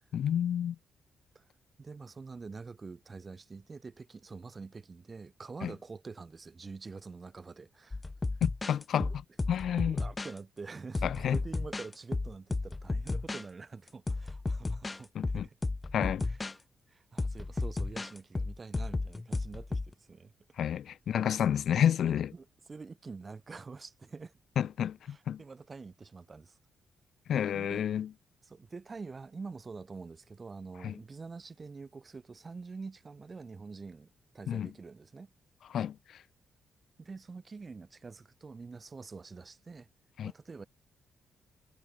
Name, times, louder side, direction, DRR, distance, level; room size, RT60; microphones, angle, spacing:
voice 1, 0.1-0.8 5.6-5.7 8.4-9.2 9.5-10.0 11.0-11.4 15.1-15.5 15.9-16.3 20.6-22.3 24.6-25.4 27.3-28.1 30.8-30.9 34.5-34.7 35.7-36.2 40.2-40.3, left 9 dB, 70° left, 0.3 m, -30 dB
voice 2, 1.8-8.0 9.9-15.5 16.2-16.6 16.9-20.3 20.7-20.8 22.3-24.3 25.1-26.6 27.5-27.9 28.4-35.3 37.0-39.9 40.2-40.7, right 4 dB, 40° right, 2.8 m, -46 dB
sound 1, 7.9-10.4 10.9-13.4 13.9-16.5 17.2-19.9, left 3 dB, 25° left, 1.9 m, -34 dB
supercardioid pair, 60°, 0 cm